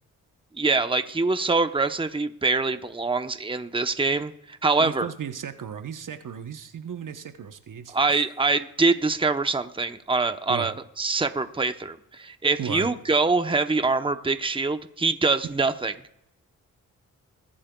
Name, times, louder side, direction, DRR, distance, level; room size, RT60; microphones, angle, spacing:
voice 1, 0.6-5.1 7.9-15.9, right 3 dB, 15° right, 9 dB, 0.9 m, -24 dB
voice 2, 4.8-8.0 10.5-10.7 12.6-12.9, right 8 dB, 60° right, 8 dB, 1.0 m, -35 dB
22.5 x 8.6 x 2.3 m, 0.81 s
supercardioid pair, 45°, 35 cm